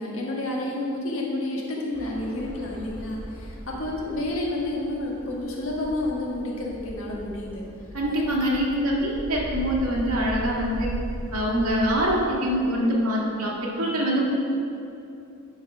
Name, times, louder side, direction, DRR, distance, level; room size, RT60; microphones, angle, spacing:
voice 1, 0.0-7.6 8.1-8.2, left 1 dB, 65° left, -2 dB, 1.6 m, -30 dB
sound 1, 1.9-12.1, equal, 10° left, 1.7 m, -38 dB
voice 2, 7.9-10.9 11.3-14.2, equal, 85° right, -3 dB, 1.8 m, -24 dB
11.0 x 4.8 x 5.0 m, 2.7 s
head